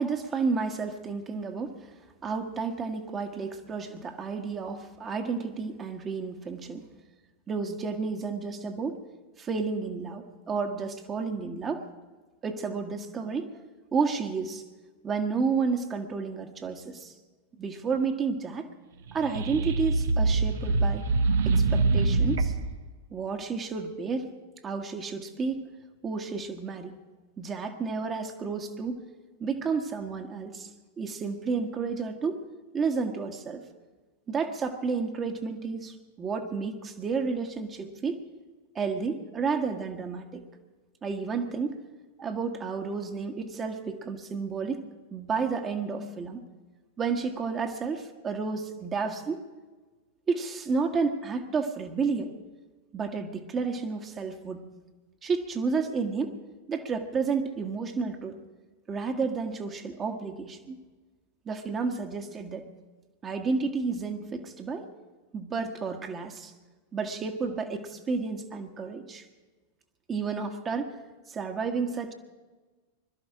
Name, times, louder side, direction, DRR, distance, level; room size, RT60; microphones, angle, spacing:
voice 1, 0.0-1.8 2.2-6.9 7.5-9.0 9.4-11.8 12.4-13.6 13.9-14.6 15.0-17.1 17.6-18.7 19.1-21.1 21.4-22.5 23.1-24.4 24.6-25.6 26.0-26.9 27.4-29.0 29.4-30.7 31.0-32.4 32.7-33.6 34.3-38.2 38.7-40.4 41.0-41.8 42.2-44.8 45.1-46.4 47.0-49.4 50.3-52.3 52.9-54.6 55.2-56.4 56.7-58.3 58.9-60.8 61.4-62.6 63.2-64.9 65.3-66.5 66.9-69.2 70.1-70.9 71.3-72.1, right 5 dB, 25° right, 5 dB, 1.5 m, -31 dB
sound 1, 19.1-22.7, right 3 dB, 60° right, 0.8 m, -24 dB
21.5 x 13.0 x 4.9 m, 1.3 s
figure-of-eight pair, 90°, 0 cm